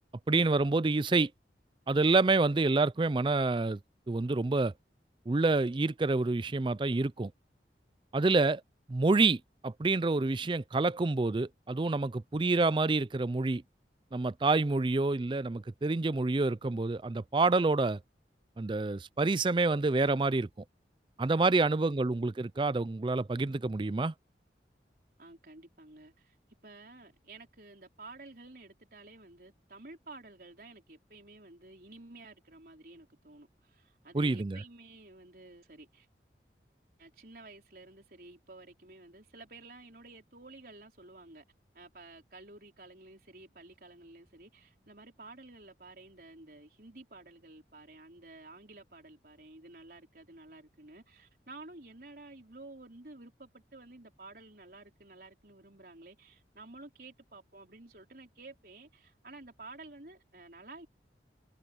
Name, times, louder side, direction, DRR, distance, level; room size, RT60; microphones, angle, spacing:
voice 1, 0.3-1.3 1.9-3.8 4.1-4.7 5.3-7.3 8.1-8.6 8.9-13.6 14.1-18.0 18.6-20.5 21.2-24.1 34.1-34.6, right 3 dB, 25° right, 0.4 m, -27 dB
voice 2, 25.2-26.3 26.6-36.1 37.0-41.4 41.7-60.9, right 2 dB, 55° right, 4.6 m, -52 dB
head